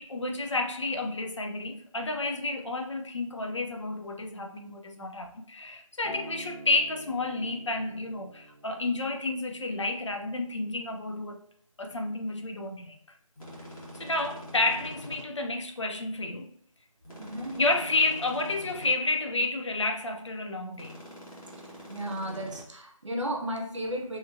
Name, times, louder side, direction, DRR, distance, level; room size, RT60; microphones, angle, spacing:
voice 1, 0.0-11.4 11.8-12.9 13.9-16.5 17.6-21.0, left 2 dB, 55° left, 0.5 m, -30 dB
Acoustic guitar, 6.0-10.3 11.2-11.3, equal, 15° left, 1.0 m, -48 dB
sound 1, 13.4-15.2 17.0-18.9 20.7-22.6, equal, 80° left, 1.3 m, -44 dB
voice 2, 17.2-17.6 21.9-24.2, equal, 55° right, 0.6 m, -34 dB
2.8 x 2.5 x 2.5 m
figure-of-eight pair, 175°, 18 cm